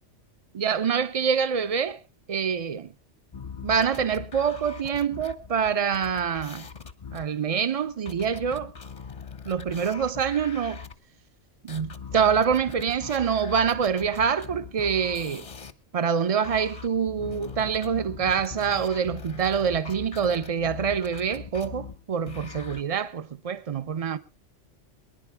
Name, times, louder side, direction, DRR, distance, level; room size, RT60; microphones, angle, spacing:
voice 1, 0.5-2.0 2.3-2.9 3.6-6.7 7.1-8.7 9.5-10.8 11.6-15.5 15.9-24.2, right 7 dB, 35° right, 0.7 m, -26 dB
sound 1, 3.3-10.9 11.7-15.7 16.4-22.8, left 6 dB, 35° left, 0.7 m, -41 dB
24.0 x 10.5 x 3.5 m
omnidirectional pair, 1.2 m